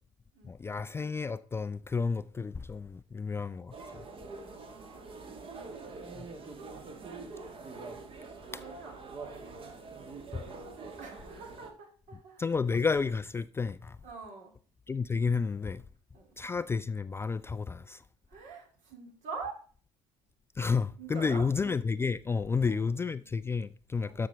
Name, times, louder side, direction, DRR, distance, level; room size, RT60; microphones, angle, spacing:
voice 1, 0.4-3.7 6.1-6.3 8.5-8.6 10.3-10.4 12.4-14.0 14.9-15.8 16.4-18.0 20.6-24.3, left 5 dB, 15° left, 0.3 m, -31 dB
sound 1, 3.7-11.7, right 3 dB, 40° right, 1.7 m, -45 dB
voice 2, 4.5-5.2 5.5-5.7 6.2-7.1 7.6-8.0 8.5-9.0 9.5-10.2 11.0-12.4 14.0-14.5 16.1-16.4 18.3-19.6 21.0-21.4 22.5-22.9 24.0-24.3, right 4 dB, 60° right, 2.9 m, -46 dB
13.0 x 5.7 x 3.5 m
figure-of-eight pair, 60°, 14 cm